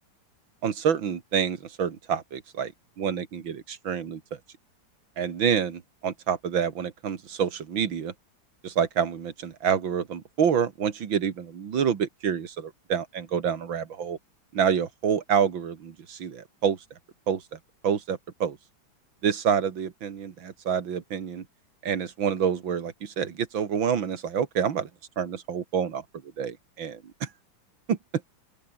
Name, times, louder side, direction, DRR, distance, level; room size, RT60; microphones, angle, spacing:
voice 1, 0.6-2.7 3.0-4.4 5.2-8.1 8.6-14.2 14.5-16.8 17.3-17.4 17.8-18.6 19.2-21.4 21.8-24.9 25.2-26.0 26.4-27.3 27.9-28.0, right 7 dB, 85° right, 2.6 m, -27 dB
open air
omnidirectional pair, 2.1 m